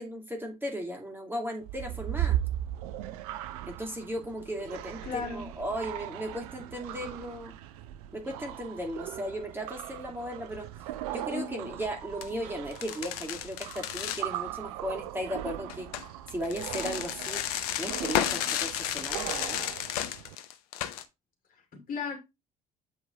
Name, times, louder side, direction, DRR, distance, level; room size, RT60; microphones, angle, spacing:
voice 1, 0.0-2.4 3.7-7.5 8.1-10.7 11.1-15.9 16.3-19.6, equal, 10° right, 2.4 m, -36 dB
sound 1, 1.6-20.4, right 12 dB, 70° right, 0.6 m, -38 dB
voice 2, 5.0-5.5 11.3-11.7 21.7-22.2, left 5 dB, 45° left, 2.6 m, -35 dB
sound 2, 11.7-11.9 12.2-12.3 12.7-14.3 15.7-21.0, left 11 dB, 70° left, 0.8 m, -33 dB
8.2 x 4.8 x 3.7 m
figure-of-eight pair, 55°, 20 cm